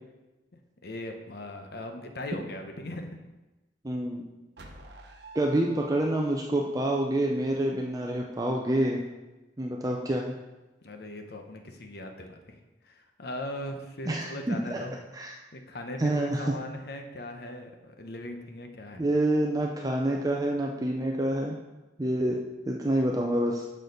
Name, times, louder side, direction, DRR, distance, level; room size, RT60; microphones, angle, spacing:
voice 1, 0.8-3.2 10.8-12.6 12.8-14.9 15.5-19.1, left 1 dB, 60° left, 5 dB, 0.9 m, -39 dB
voice 2, 3.8-4.3 5.3-9.0 9.6-10.3 14.1-14.8 15.1-15.3 16.0-16.5 19.0-21.6 22.0-22.4 22.7-23.7, right 1 dB, 20° right, 0 dB, 0.6 m, -27 dB
sound 1, 4.6-6.7, right 2 dB, 65° right, 1.0 m, -48 dB
6.6 x 6.5 x 5.2 m, 1.1 s
head